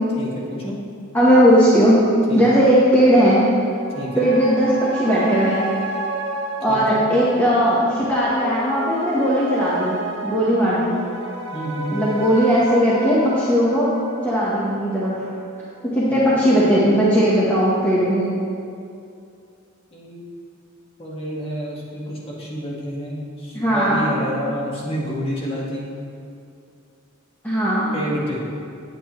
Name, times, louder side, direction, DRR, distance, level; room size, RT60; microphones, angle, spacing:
voice 1, 0.2-0.8 2.3-2.4 3.9-4.3 6.7-7.1 11.5-12.0 16.1-16.3 19.9-20.2 21.0-25.9 27.9-28.4, equal, 30° left, -5 dB, 1.6 m, -29 dB
voice 2, 1.1-2.0 2.3-3.4 4.2-5.7 6.6-10.0 10.2-11.0 11.9-13.9 14.2-15.2 15.8-18.2 23.5-24.3 27.4-27.9, equal, 10° left, -9 dB, 1.0 m, -17 dB
sound 1, 3.7-16.5 16.8-16.9, right 2 dB, 60° right, 1.2 m, -32 dB
8.8 x 8.7 x 3.1 m, 2.5 s
head